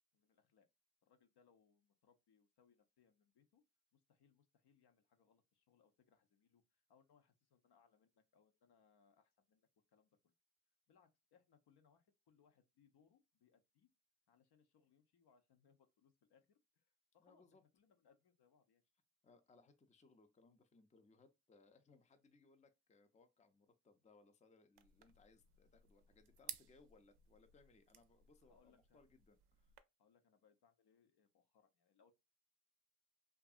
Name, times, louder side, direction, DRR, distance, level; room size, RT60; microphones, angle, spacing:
voice 1, 0.1-0.7 1.0-3.6 3.9-10.3 10.9-13.9 14.3-18.8 28.5-29.0 30.0-32.1, left 6 dB, 55° left, 0.6 m, -74 dB
voice 2, 17.2-17.6 19.2-29.7, left 3 dB, 15° left, 0.5 m, -69 dB
sound 1, 24.8-29.8, right 10 dB, 55° right, 0.5 m, -57 dB
2.6 x 2.4 x 2.4 m
hypercardioid pair, 40°, 48 cm